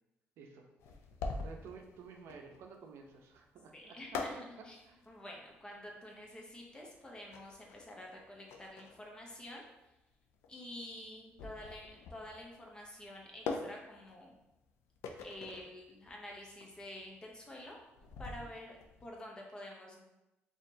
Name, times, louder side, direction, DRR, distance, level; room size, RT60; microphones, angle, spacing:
sound 1, 0.8-19.1, left 4 dB, 90° left, 0.4 m, -45 dB
voice 1, 1.3-4.2 4.6-5.0, right 5 dB, 75° right, 3 dB, 0.5 m, -52 dB
voice 2, 3.7-4.8 5.1-9.7 10.5-14.3 15.2-17.8 18.2-20.0, left 1 dB, 20° left, -1 dB, 0.8 m, -49 dB
4.2 x 2.9 x 2.7 m, 0.95 s
cardioid pair, 110°, 4 cm